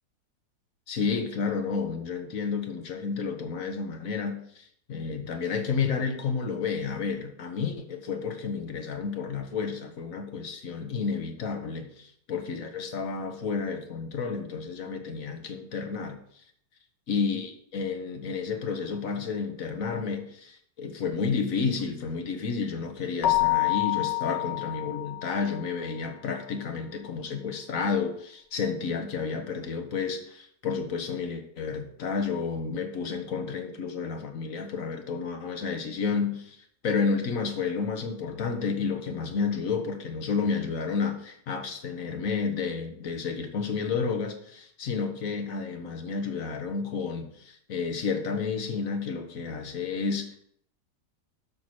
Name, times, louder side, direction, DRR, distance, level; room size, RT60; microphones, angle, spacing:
voice 1, 0.9-16.4 17.1-50.4, left 5 dB, 55° left, 5 dB, 1.5 m, -31 dB
Keyboard (musical), 23.2-25.7, left 17 dB, 90° left, 1.5 m, -27 dB
7.4 x 5.8 x 6.2 m, 0.67 s
omnidirectional pair, 1.8 m